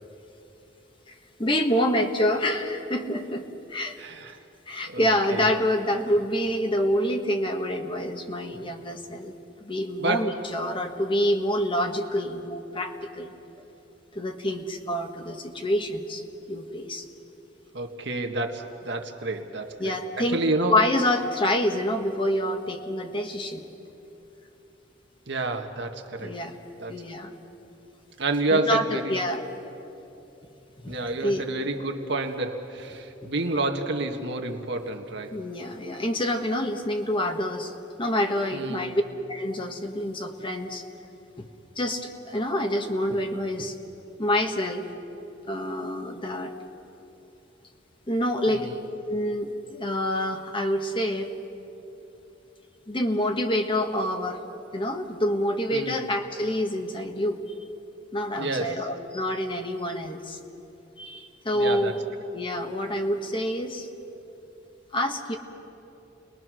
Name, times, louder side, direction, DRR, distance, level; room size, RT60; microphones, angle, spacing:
voice 1, 1.1-4.0 4.7-9.3 9.6-13.6 14.1-16.2 16.5-17.0 19.8-20.4 20.7-23.6 26.2-26.6 26.9-27.3 28.5-29.4 30.8-31.4 33.2-33.3 35.3-39.0 39.3-40.8 41.4-41.5 41.8-43.8 44.2-44.8 45.5-46.6 48.1-48.7 49.1-51.3 52.9-54.4 54.7-57.4 58.1-60.4 61.0-62.0 62.3-63.9 64.9-65.3, left 1 dB, 25° left, 5 dB, 1.4 m, -27 dB
voice 2, 4.0-4.3 4.9-5.5 10.0-10.4 17.7-20.8 25.3-26.4 26.8-26.9 28.2-29.2 30.9-35.4 38.5-39.0 48.5-48.7 55.7-56.0 58.4-58.9 61.5-61.9, right 2 dB, 65° right, 4 dB, 1.6 m, -29 dB
30.0 x 21.0 x 6.3 m, 3.0 s
head